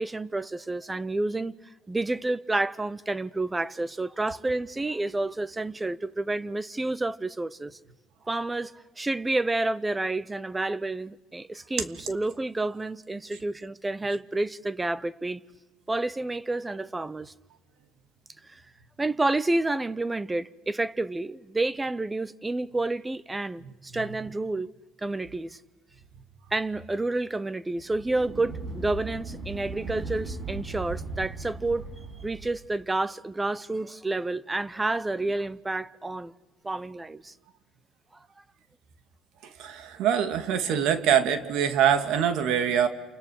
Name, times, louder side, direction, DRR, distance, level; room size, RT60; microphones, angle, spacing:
voice 1, 0.0-1.5 1.9-7.8 8.3-15.4 15.9-17.3 18.4-18.6 19.0-24.7 25.0-25.6 26.5-31.9 32.2-36.3 36.6-37.3, right 2 dB, 15° right, 0.8 m, -29 dB
sound 1, 27.8-32.6, right 3 dB, 45° right, 7.1 m, -37 dB
voice 2, 39.6-42.9, right 9 dB, 75° right, 2.6 m, -24 dB
29.0 x 29.0 x 6.6 m
cardioid pair, 120°, 0 cm